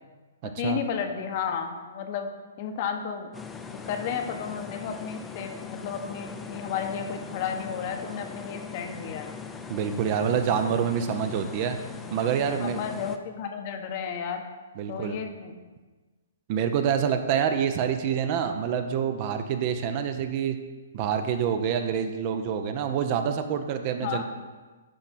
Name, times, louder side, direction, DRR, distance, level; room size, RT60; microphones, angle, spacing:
voice 1, 0.4-2.3 2.6-3.3 3.7-9.3 12.6-14.4 14.9-15.5 24.0-24.2, left 7 dB, 45° left, 5 dB, 0.9 m, -32 dB
sound 1, 3.3-13.2, left 5 dB, 10° left, 0.5 m, -40 dB
voice 2, 9.7-11.8 12.1-12.8 14.8-15.2 16.5-20.6 20.9-24.2, right 8 dB, 40° right, 8 dB, 0.6 m, -26 dB
10.0 x 3.4 x 5.9 m, 1.3 s
hypercardioid pair, 140°, 0 cm